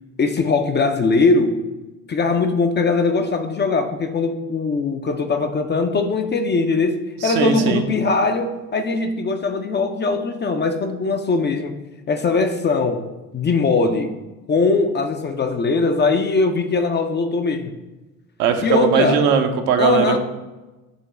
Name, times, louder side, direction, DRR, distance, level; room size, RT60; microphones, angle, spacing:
voice 1, 0.2-1.6 2.1-11.7 12.1-13.1 13.3-14.1 14.5-17.7 18.6-19.2 19.8-20.2, left 3 dB, 25° left, 6 dB, 0.5 m, -20 dB
voice 2, 7.2-7.8 18.4-20.2, right 6 dB, 60° right, 6 dB, 0.8 m, -19 dB
8.1 x 2.9 x 4.2 m, 1.1 s
hypercardioid pair, 55°, 44 cm